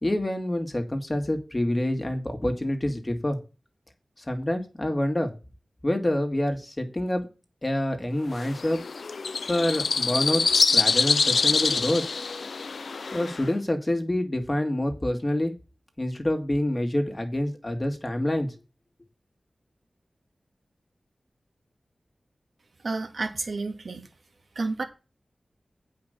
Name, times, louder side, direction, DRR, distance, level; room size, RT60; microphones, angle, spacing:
voice 1, 0.0-3.4 4.3-5.3 5.8-7.3 7.6-8.8 9.5-10.4 10.7-12.0 13.1-15.5 16.0-18.5, left 1 dB, 30° left, 2.5 m, -27 dB
sound 1, 8.3-13.5, left 4 dB, 80° left, 0.5 m, -25 dB
voice 2, 22.8-24.0 24.6-24.8, right 3 dB, 70° right, 2.1 m, -30 dB
8.8 x 5.4 x 6.7 m
wide cardioid pair, 55°, 0 cm